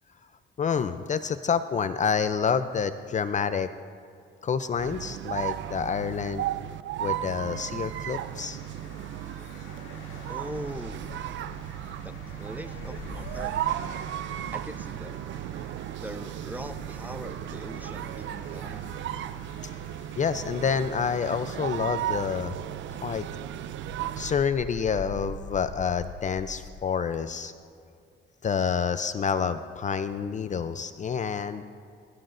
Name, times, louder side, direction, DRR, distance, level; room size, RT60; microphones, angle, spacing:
voice 1, 0.6-3.7 4.4-6.5 7.0-8.6 20.2-22.5 22.9-23.3 24.2-27.5 28.4-31.7, left 6 dB, 40° left, 11 dB, 0.5 m, -28 dB
sound 1, 4.8-24.5, right 11 dB, 70° right, 0.5 m, -35 dB
sound 2, 7.4-26.8, left 3 dB, 75° left, 1.9 m, -46 dB
voice 2, 10.3-11.1 12.0-13.6 14.5-15.2 16.0-18.9, right 1 dB, 10° right, 8 dB, 0.7 m, -41 dB
21.5 x 13.0 x 2.6 m, 2.5 s
cardioid pair, 90°, 20 cm